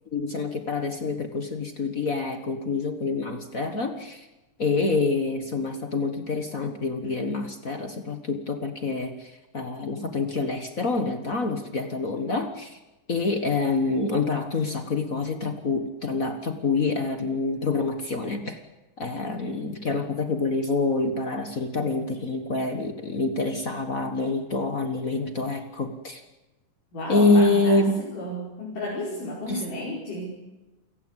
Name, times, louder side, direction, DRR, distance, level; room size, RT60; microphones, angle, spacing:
voice 1, 0.1-4.3 4.6-12.8 13.1-18.6 19.0-26.2 27.1-28.0 29.5-29.6, left 3 dB, 45° left, 7 dB, 1.1 m, -26 dB
voice 2, 26.9-30.3, left 1 dB, 75° left, -5 dB, 6.8 m, -33 dB
28.5 x 16.5 x 8.2 m, 1.1 s
omnidirectional pair, 3.8 m